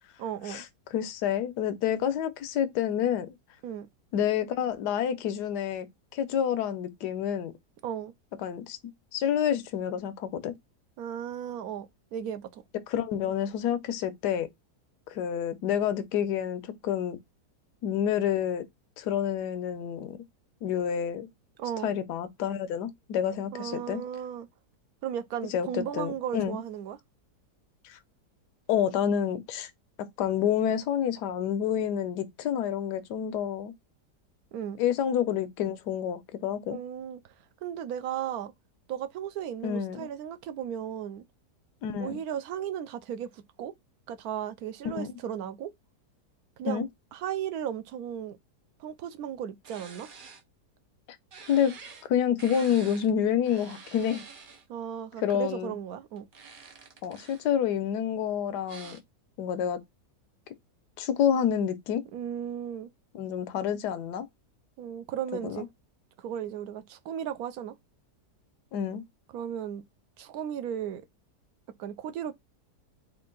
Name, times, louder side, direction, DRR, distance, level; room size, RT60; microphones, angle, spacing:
voice 1, 0.2-0.7 3.6-3.9 7.8-8.1 11.0-12.6 21.6-21.9 23.5-24.5 25.0-27.0 34.5-34.8 36.7-37.2 37.6-38.5 38.9-41.2 42.0-43.7 44.1-45.7 46.6-46.8 47.1-48.4 48.8-50.1 54.7-56.3 62.1-62.9 64.8-65.7 66.2-67.7 69.3-69.8 70.2-71.0 71.8-72.3, right 9 dB, 70° right, 1.0 m, -35 dB
voice 2, 0.9-3.3 4.1-5.9 6.1-7.5 8.4-8.8 9.1-10.5 12.9-14.5 15.1-17.2 17.8-18.6 19.0-20.2 20.6-21.3 21.8-24.0 25.5-26.6 27.9-28.0 28.7-29.7 30.2-33.7 34.8-36.8 39.6-40.1 41.8-42.2 44.9-45.2 46.7-46.9 51.5-51.7 52.1-54.2 55.2-55.7 57.0-59.0 59.4-59.8 61.0-62.0 63.1-64.3 65.4-65.6 68.7-69.0, left 9 dB, 80° left, 1.3 m, -28 dB
sound 1, 49.6-50.4 51.3-52.1 52.4-53.1 53.5-54.6 56.2-57.5 58.7-59.0, right 5 dB, 55° right, 0.5 m, -48 dB
4.5 x 2.5 x 3.8 m
omnidirectional pair, 1.8 m